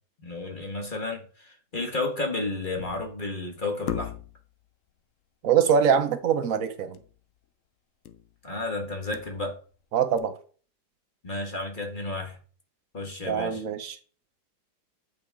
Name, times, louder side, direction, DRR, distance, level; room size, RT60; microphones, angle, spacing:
voice 1, 0.2-4.1 8.4-9.6 11.2-12.4 12.9-13.6, left 2 dB, 30° left, 1.5 m, -32 dB
sound 1, 2.8-3.2 3.9-4.5 6.9-7.2 7.4-7.5 8.0-8.4 8.8-9.7 10.2-10.3, left 11 dB, 75° left, 0.7 m, -37 dB
voice 2, 5.4-7.0 9.9-10.3 13.2-14.0, right 7 dB, 60° right, 0.9 m, -23 dB
8.4 x 4.6 x 3.6 m
omnidirectional pair, 2.0 m